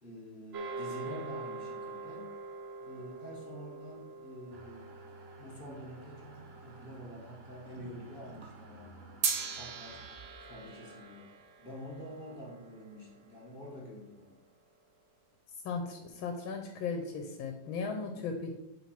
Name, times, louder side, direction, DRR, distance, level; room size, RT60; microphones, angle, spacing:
voice 1, 0.0-2.3 2.8-4.9 5.4-9.2 9.5-11.3 11.6-14.4 18.1-18.3, equal, 30° left, -3 dB, 1.5 m, -47 dB
sound 1, 0.5-7.0 9.2-13.7, right 4 dB, 60° right, 0.7 m, -41 dB
sound 2, 4.5-12.6, right 2 dB, 40° right, 1.0 m, -54 dB
voice 2, 15.6-18.5, left 4 dB, 80° left, 5 dB, 1.6 m, -37 dB
7.3 x 3.8 x 5.8 m, 0.91 s
omnidirectional pair, 2.1 m